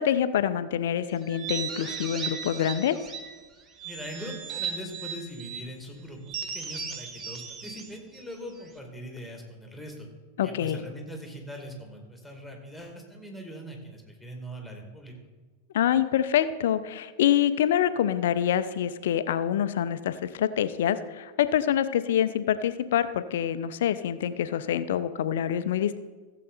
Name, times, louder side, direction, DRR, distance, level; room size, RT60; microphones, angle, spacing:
voice 1, 0.0-3.0 10.4-10.8 15.7-26.0, left 10 dB, 55° left, 13 dB, 0.5 m, -26 dB
sound 1, 1.3-3.4 3.8-5.7 6.3-8.8, right 6 dB, 25° right, 1.4 m, -37 dB
voice 2, 3.8-10.1 10.4-15.1, equal, ahead, 2 dB, 2.4 m, -41 dB
15.0 x 7.5 x 4.1 m, 1.4 s
figure-of-eight pair, 90°, 0 cm